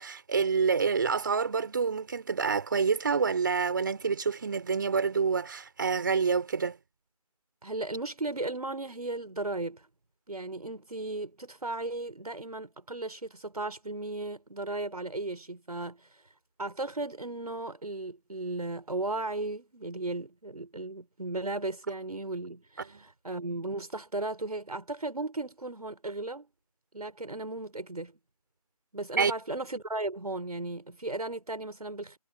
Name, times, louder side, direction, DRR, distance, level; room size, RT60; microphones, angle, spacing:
voice 1, 0.0-6.8 22.9-23.0 29.2-29.3, right 5 dB, 35° right, 3.9 m, -27 dB
voice 2, 7.6-9.9 10.3-16.1 16.6-26.5 26.9-28.1 28.9-32.2, right 2 dB, 85° right, 6.1 m, -36 dB
figure-of-eight pair, 170°, 19 cm